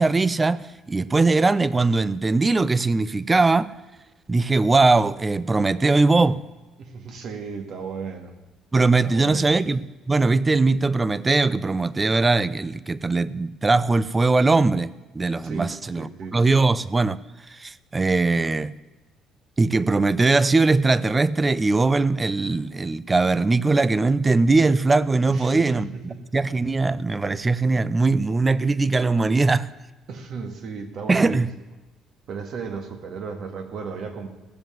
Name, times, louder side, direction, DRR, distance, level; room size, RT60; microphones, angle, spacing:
voice 1, 0.0-3.7 4.3-6.4 8.7-17.2 17.5-18.7 19.6-25.9 26.3-29.7 31.1-31.5, right 3 dB, 20° right, 0.5 m, -20 dB
voice 2, 6.8-8.3 9.0-9.6 15.4-16.4 25.3-26.2 30.1-31.5 32.3-34.3, right 5 dB, 55° right, 2.0 m, -35 dB
16.5 x 7.3 x 9.3 m
cardioid pair, 115°, 0 cm